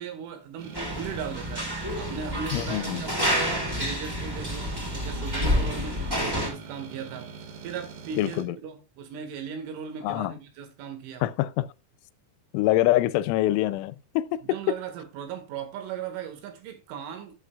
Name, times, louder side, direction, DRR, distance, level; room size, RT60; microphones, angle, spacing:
voice 1, 0.0-11.2 14.4-17.4, right 7 dB, 90° right, 4.3 m, -38 dB
sound 1, 0.6-8.4, right 6 dB, 60° right, 2.3 m, -42 dB
sound 2, 0.7-6.5, equal, 40° right, 0.3 m, -29 dB
voice 2, 2.5-3.0 8.2-8.6 10.0-10.3 11.2-11.7 12.5-14.8, left 15 dB, 90° left, 3.1 m, -25 dB
11.0 x 8.4 x 2.3 m
omnidirectional pair, 5.4 m